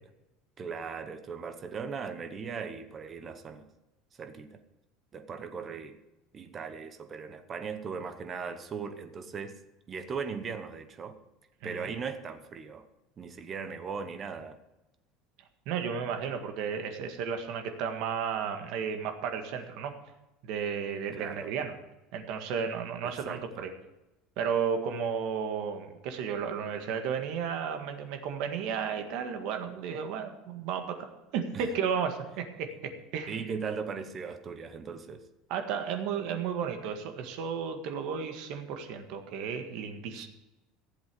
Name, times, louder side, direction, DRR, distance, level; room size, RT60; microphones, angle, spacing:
voice 1, 0.6-3.7 4.2-4.6 5.1-6.0 6.3-9.6 9.9-11.2 11.6-12.9 13.2-14.6 21.1-21.5 23.0-23.7 31.5-31.7 33.3-35.2 40.2-40.3, right 5 dB, 20° right, 9 dB, 1.0 m, -38 dB
voice 2, 11.6-11.9 15.7-19.9 20.4-21.7 22.1-23.7 24.4-33.4 35.5-40.3, right 7 dB, 50° right, 6 dB, 1.8 m, -33 dB
15.0 x 7.9 x 6.9 m, 0.98 s
cardioid pair, 175°, 0 cm